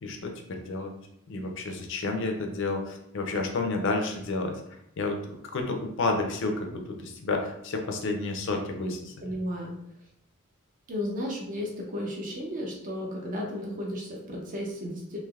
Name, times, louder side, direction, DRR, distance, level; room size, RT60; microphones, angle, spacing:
voice 1, 0.0-0.9 1.3-4.6 5.0-5.2 5.5-9.1, left 3 dB, 60° left, 3 dB, 0.5 m, -30 dB
voice 2, 9.2-9.7 10.9-15.2, left 1 dB, 40° right, -1 dB, 0.6 m, -34 dB
3.2 x 2.9 x 2.3 m, 0.76 s
head